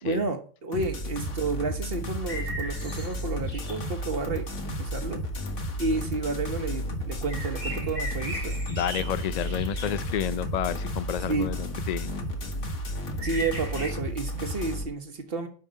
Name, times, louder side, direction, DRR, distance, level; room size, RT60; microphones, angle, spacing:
voice 1, 0.0-4.5 4.8-5.2 5.8-8.6 11.3-11.5 13.2-15.5, right 3 dB, 55° right, 1.5 m, -31 dB
sound 1, 0.7-14.8, equal, 80° left, 1.8 m, -33 dB
sound 2, 2.3-13.9, equal, 45° left, 2.8 m, -40 dB
voice 2, 8.7-12.1, left 10 dB, 65° left, 0.4 m, -30 dB
10.5 x 5.5 x 5.3 m
omnidirectional pair, 1.2 m